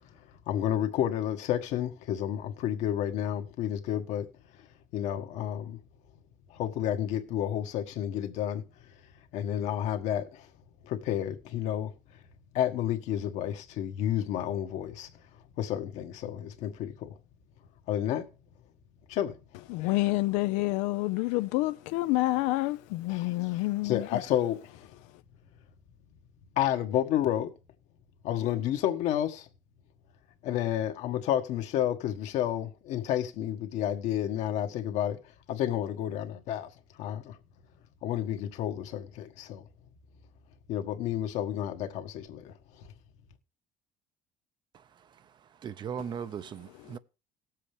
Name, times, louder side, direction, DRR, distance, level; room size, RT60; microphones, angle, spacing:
voice 1, 0.5-4.3 4.9-5.8 6.5-8.6 9.3-10.5 10.8-11.9 12.5-15.1 15.6-17.1 17.9-18.3 19.1-19.3 23.1-24.9 26.6-27.5 28.2-29.5 30.4-35.2 35.5-36.7 37.0-37.4 38.0-39.6 40.7-42.9, left 11 dB, 70° left, 1.5 m, -30 dB
voice 2, 19.7-24.0, left 19 dB, 90° left, 0.5 m, -28 dB
voice 3, 45.6-47.0, right 8 dB, 40° right, 0.6 m, -37 dB
18.5 x 7.6 x 3.4 m
cardioid pair, 125°, 12 cm